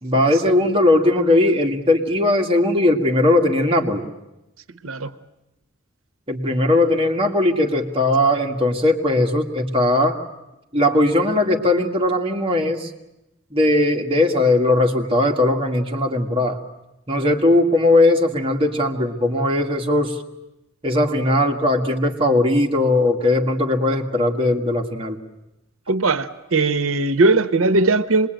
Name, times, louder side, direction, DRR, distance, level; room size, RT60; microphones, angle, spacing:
voice 1, 0.0-4.1 6.3-10.2 10.7-12.9 13.5-16.6 17.1-20.2 20.8-25.2, left 1 dB, 25° right, 1.9 m, -19 dB
voice 2, 25.9-28.3, right 3 dB, 85° right, 0.9 m, -19 dB
26.0 x 21.0 x 9.1 m
head